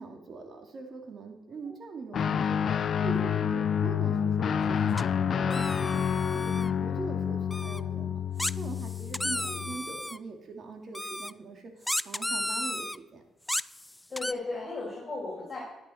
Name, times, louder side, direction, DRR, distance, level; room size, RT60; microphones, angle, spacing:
voice 1, 0.0-8.2 8.6-13.2, right 4 dB, 50° right, 3 dB, 2.5 m, -42 dB
Guitar, 2.1-9.8, left 8 dB, 55° left, 0.6 m, -28 dB
sound 1, 5.0-5.1 5.5-6.7 7.5-7.8 8.4-10.2 10.9-11.3 11.9-13.0 13.5-14.3, left 1 dB, 10° left, 0.3 m, -33 dB
voice 2, 14.1-15.6, left 3 dB, 25° left, -6 dB, 5.1 m, -36 dB
12.0 x 10.5 x 4.6 m, 1.0 s
cardioid pair, 90°, 0 cm